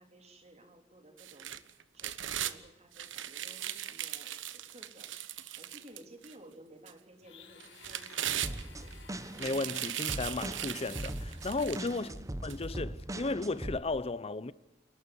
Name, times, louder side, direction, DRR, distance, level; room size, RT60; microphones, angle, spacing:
voice 1, 0.0-9.0 11.9-12.2, right 1 dB, 35° right, 3.6 m, -56 dB
sound 1, 1.2-2.6 2.9-6.3 6.9-7.0 7.6-8.9 9.3-12.0 12.5-12.6, right 11 dB, 75° right, 1.1 m, -38 dB
Domestic sounds home sounds, 7.2-11.6, left 6 dB, 70° left, 3.5 m, -56 dB
sound 2, 8.4-13.8, right 1 dB, 15° right, 1.0 m, -40 dB
voice 2, 9.4-12.1 12.4-14.5, left 3 dB, 30° left, 0.7 m, -34 dB
29.0 x 12.5 x 9.8 m
head